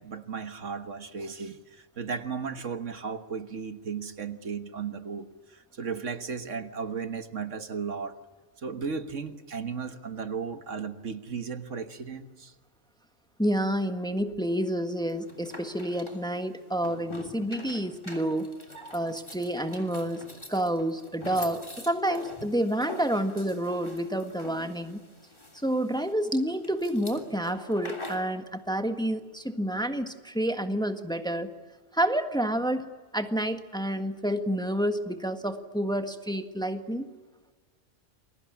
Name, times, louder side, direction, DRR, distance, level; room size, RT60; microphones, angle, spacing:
voice 1, 0.0-8.2 8.6-12.5, right 5 dB, 75° right, 9 dB, 1.8 m, -35 dB
voice 2, 13.4-18.5 18.9-20.2 20.5-25.0 25.6-31.5 31.9-37.1, right 1 dB, 5° left, 7 dB, 1.6 m, -29 dB
sound 1, 15.1-28.3, left 1 dB, 20° left, 3.3 m, -44 dB
28.5 x 22.5 x 8.6 m, 1.3 s
omnidirectional pair, 1.3 m